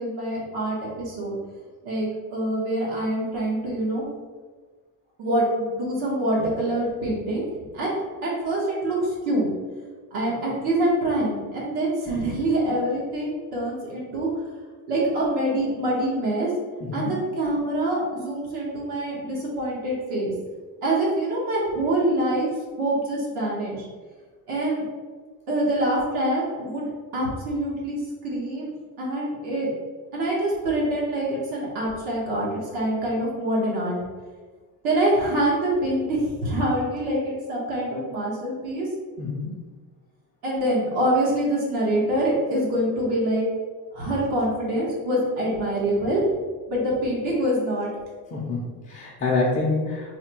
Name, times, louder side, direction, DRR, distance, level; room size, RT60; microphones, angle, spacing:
voice 1, 0.0-1.4 1.8-4.0 5.2-7.5 7.7-9.5 10.1-14.3 14.9-16.5 16.9-20.3 20.8-22.5 22.8-23.9 24.5-24.8 25.5-26.9 27.1-28.0 28.2-28.7 29.0-29.7 30.1-34.0 34.8-38.9 40.4-43.4 43.9-46.2 46.7-47.9, right 1 dB, 70° right, -5 dB, 1.3 m, -25 dB
voice 2, 39.2-39.5 48.3-50.2, left 3 dB, 25° left, -3 dB, 0.6 m, -26 dB
3.5 x 2.2 x 4.3 m, 1.4 s
cardioid pair, 140°, 39 cm